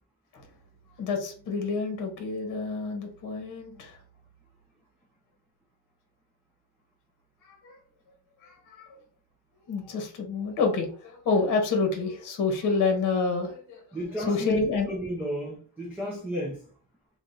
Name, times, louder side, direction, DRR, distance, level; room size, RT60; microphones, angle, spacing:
voice 1, 1.0-4.0 7.5-7.8 8.4-9.0 9.7-13.8 14.2-14.9, left 4 dB, 40° left, 1.0 m, -28 dB
voice 2, 13.9-14.6 14.9-16.6, equal, 5° right, 0.5 m, -32 dB
3.4 x 2.4 x 3.9 m
cardioid pair, 155°, 46 cm